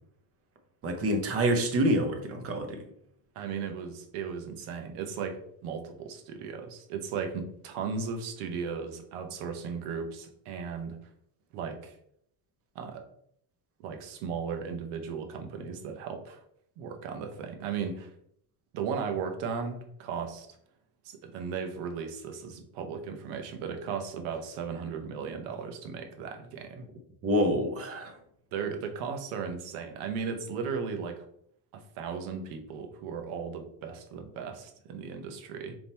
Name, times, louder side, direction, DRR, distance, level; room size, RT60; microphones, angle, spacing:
voice 1, 0.8-2.8 27.2-28.1, equal, 30° right, 5 dB, 0.7 m, -27 dB
voice 2, 3.3-11.0 11.5-12.0 12.7-13.0 13.8-16.4 16.8-18.1 18.7-20.5 21.0-26.9 28.5-31.2 31.7-35.7, right 6 dB, 85° right, 6 dB, 0.9 m, -36 dB
3.6 x 2.9 x 4.1 m, 0.69 s
cardioid pair, 155°, 48 cm